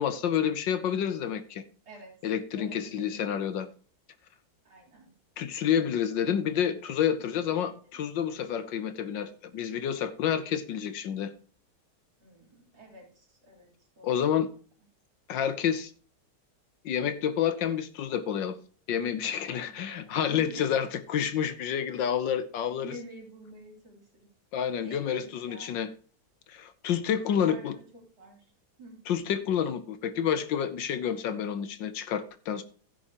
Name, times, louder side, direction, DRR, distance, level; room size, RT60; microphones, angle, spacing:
voice 1, 0.0-1.6 2.2-3.7 5.4-11.3 14.0-14.5 15.3-15.9 16.8-18.6 18.9-22.9 24.5-25.9 26.5-27.8 29.1-32.6, left 9 dB, 70° left, 1.5 m, -29 dB
voice 2, 2.5-3.2 4.6-5.1 7.5-8.1 12.2-13.7 14.0-14.4 19.5-20.8 22.7-24.3 24.8-25.8 27.1-28.5 28.8-29.1, right 2 dB, 65° right, 4.7 m, -48 dB
15.5 x 8.6 x 3.0 m
omnidirectional pair, 2.2 m